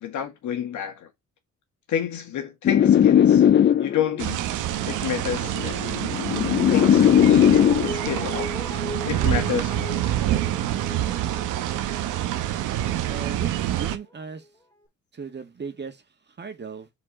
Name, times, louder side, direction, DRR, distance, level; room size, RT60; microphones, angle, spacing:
voice 1, 0.0-1.1 1.9-3.4 3.8-4.4 4.9-5.8 6.7-8.5 9.1-10.0, left 9 dB, 75° left, 2.0 m, -29 dB
sound 1, 2.6-4.2 5.2-7.9, left 9 dB, 40° left, 0.4 m, -17 dB
sound 2, 4.2-14.0, right 12 dB, 90° right, 0.9 m, -27 dB
Guitar, 7.0-14.0 14.4-14.5, left 1 dB, 15° left, 2.5 m, -39 dB
voice 2, 13.1-14.5 15.1-16.9, right 5 dB, 35° right, 1.8 m, -37 dB
5.2 x 4.4 x 4.9 m
cardioid pair, 90°, 30 cm